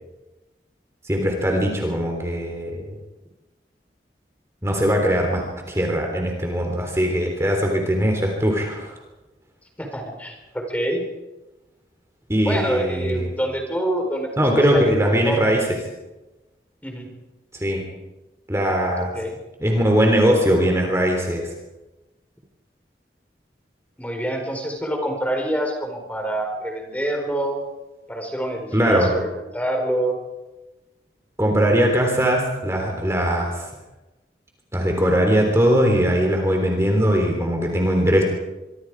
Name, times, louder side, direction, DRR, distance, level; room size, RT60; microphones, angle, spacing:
voice 1, 1.0-2.9 4.6-9.0 12.3-13.3 14.4-15.6 17.6-17.8 18.5-19.1 19.6-21.5 28.7-29.1 31.4-33.7 34.7-38.2, equal, 15° right, 1 dB, 3.6 m, -20 dB
voice 2, 9.8-11.0 12.4-15.5 16.8-17.1 19.1-19.4 24.0-27.6 28.1-30.2, right 1 dB, 10° left, 3 dB, 4.4 m, -26 dB
25.0 x 25.0 x 4.9 m, 1.1 s
head